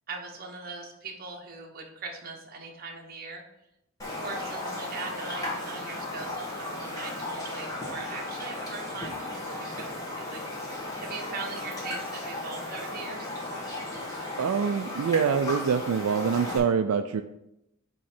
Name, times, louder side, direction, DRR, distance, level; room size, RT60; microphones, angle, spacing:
voice 1, 0.1-3.4 4.2-10.4 11.0-13.3, right 4 dB, 45° right, 2 dB, 1.0 m, -40 dB
Raindrop, 4.0-16.6, left 1 dB, 15° left, 1.4 m, -35 dB
voice 2, 14.4-17.2, right 6 dB, 80° right, 8 dB, 0.3 m, -25 dB
8.5 x 3.1 x 4.4 m, 0.85 s
head